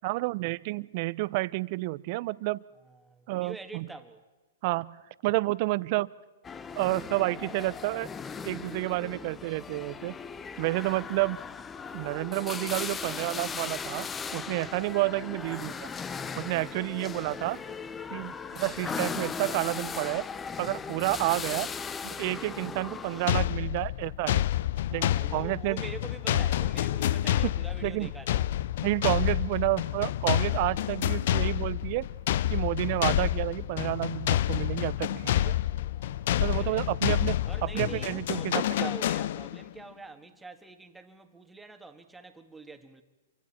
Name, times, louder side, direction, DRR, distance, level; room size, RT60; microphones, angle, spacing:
voice 1, 0.0-2.6 3.3-3.9 4.6-5.0 5.2-6.1 6.7-8.1 8.4-10.1 10.6-11.4 11.9-15.9 16.4-17.6 18.1-20.2 20.6-21.7 22.0-24.4 24.9-25.9 27.8-28.1 28.8-32.0 32.5-35.6 36.4-38.9, right 21 dB, 45° right, 0.7 m, -30 dB
voice 2, 2.8-4.2 15.4-15.9 24.9-28.4 30.3-31.1 35.3-36.9 37.5-43.0, right 3 dB, 5° right, 1.8 m, -46 dB
sound 1, 6.4-23.4, left 5 dB, 15° left, 0.7 m, -38 dB
sound 2, 23.3-39.7, left 12 dB, 55° left, 0.6 m, -28 dB
28.0 x 25.0 x 4.4 m
hypercardioid pair, 135°, 0 cm